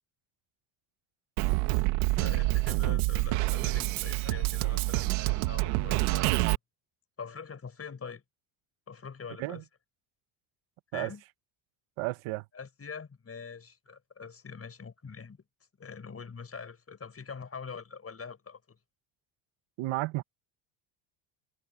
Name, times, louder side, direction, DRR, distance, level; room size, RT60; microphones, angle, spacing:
Drum kit, 1.4-6.5, right 21 dB, 85° right, 1.8 m, -27 dB
voice 1, 2.1-6.5 7.2-8.2 8.9-9.6 10.9-11.2 12.5-15.4 15.8-18.6, left 5 dB, 30° left, 5.8 m, -44 dB
voice 2, 12.0-12.5 19.8-20.2, right 20 dB, 70° right, 1.5 m, -32 dB
supercardioid pair, 100°, 50 cm